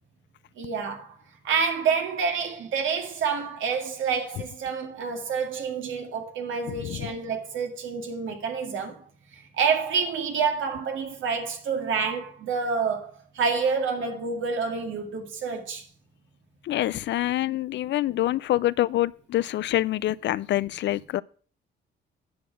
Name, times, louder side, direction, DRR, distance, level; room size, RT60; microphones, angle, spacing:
voice 1, 0.6-1.2 1.4-9.0 9.3-15.8, right 5 dB, 80° right, 2.1 m, -28 dB
voice 2, 6.7-7.1 16.7-21.2, left 14 dB, 65° left, 0.4 m, -26 dB
9.4 x 6.1 x 6.0 m
cardioid pair, 90°, 20 cm